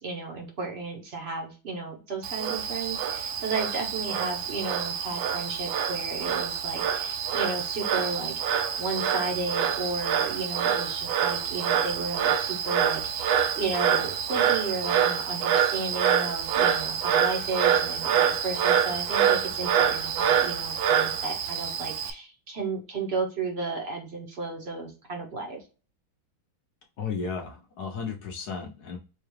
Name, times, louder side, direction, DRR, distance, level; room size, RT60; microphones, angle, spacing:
voice 1, 0.0-25.6, right 3 dB, 50° right, 1 dB, 0.7 m, -33 dB
Frog, 2.2-22.1, right 8 dB, 80° right, 1.3 m, -26 dB
voice 2, 27.0-29.0, left 5 dB, 65° left, 1 dB, 1.0 m, -34 dB
4.8 x 2.3 x 3.1 m, 0.33 s
omnidirectional pair, 2.3 m